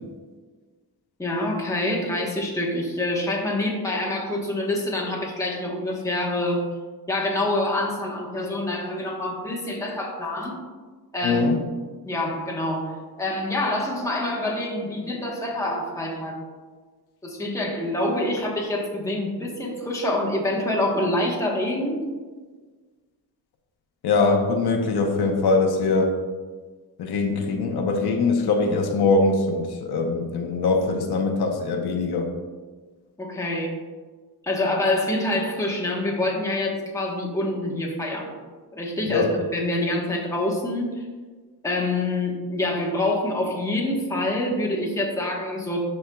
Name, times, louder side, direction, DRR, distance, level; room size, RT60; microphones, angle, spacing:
voice 1, 1.2-6.7 7.1-10.6 11.1-11.4 12.0-16.4 17.2-22.0 33.2-33.7 34.4-38.3 38.7-39.2 39.5-41.0 41.6-45.9, left 1 dB, 10° left, -3 dB, 1.1 m, -26 dB
voice 2, 11.2-11.6 24.0-26.1 27.0-32.3 39.1-39.3, left 3 dB, 75° left, 3 dB, 0.9 m, -22 dB
12.0 x 4.5 x 2.3 m, 1.4 s
wide cardioid pair, 145°, 39 cm